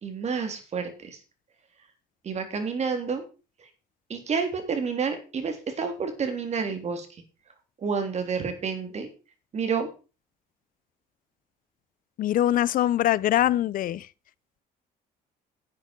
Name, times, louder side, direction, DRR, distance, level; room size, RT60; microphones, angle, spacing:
voice 1, 0.0-1.2 2.2-3.2 4.1-7.1 7.8-9.1 9.5-9.9, right 5 dB, 40° right, 3.3 m, -29 dB
voice 2, 12.2-14.1, left 12 dB, 55° left, 0.6 m, -23 dB
11.0 x 9.2 x 4.6 m
cardioid pair, 110°, 17 cm